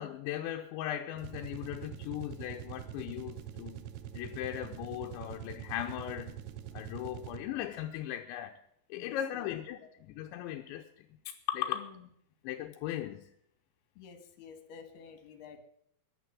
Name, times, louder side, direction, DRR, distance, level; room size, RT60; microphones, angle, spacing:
voice 1, 0.0-3.9 4.1-6.4 6.7-8.5 8.9-11.9 12.4-13.3, left 12 dB, 80° left, 3 dB, 3.0 m, -38 dB
sound 1, 1.1-7.7, right 10 dB, 90° right, 2.0 m, -44 dB
voice 2, 9.0-9.5 9.8-9.9 11.8-11.9 14.0-15.6, left 6 dB, 60° left, 9 dB, 3.5 m, -50 dB
14.5 x 11.0 x 7.5 m, 0.70 s
omnidirectional pair, 5.6 m